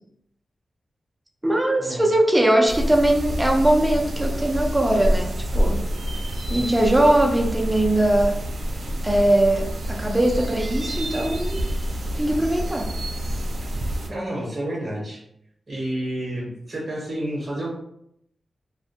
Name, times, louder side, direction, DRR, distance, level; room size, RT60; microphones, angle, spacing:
voice 1, 1.4-5.8 6.5-8.4 9.0-11.6 12.2-12.9, right 1 dB, 10° right, 0 dB, 0.4 m, -20 dB
sound 1, 2.7-14.1, equal, 75° right, 0.4 m, -27 dB
voice 2, 14.1-15.2 15.7-17.7, right 1 dB, 40° right, -5 dB, 0.7 m, -30 dB
2.2 x 2.1 x 2.7 m, 0.74 s
wide cardioid pair, 130°, 0 cm